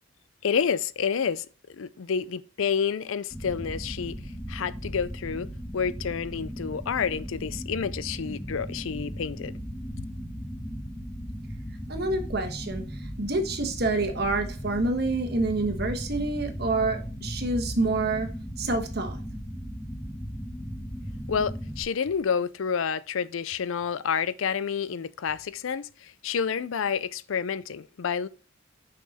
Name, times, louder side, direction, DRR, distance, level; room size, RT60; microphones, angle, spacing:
voice 1, 0.4-4.2 4.5-9.5 21.3-28.3, left 6 dB, 75° left, 0.4 m, -29 dB
sound 1, 3.3-21.8, equal, 10° left, 1.5 m, -37 dB
voice 2, 11.9-18.3 18.6-19.2, right 2 dB, 50° right, 1.3 m, -28 dB
6.1 x 5.8 x 4.1 m
head